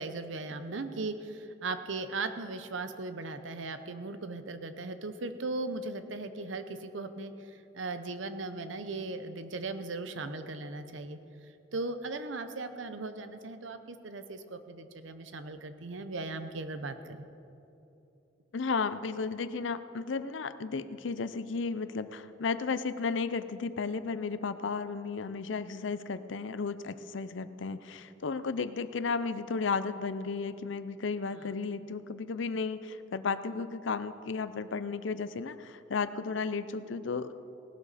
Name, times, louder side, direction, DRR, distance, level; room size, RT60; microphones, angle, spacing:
voice 1, 0.0-7.3 7.7-11.2 11.7-17.3 31.3-31.4, right 3 dB, 85° right, 10 dB, 0.8 m, -38 dB
voice 2, 18.5-37.3, left 4 dB, 85° left, 13 dB, 0.6 m, -34 dB
18.5 x 12.0 x 4.2 m, 2.9 s
head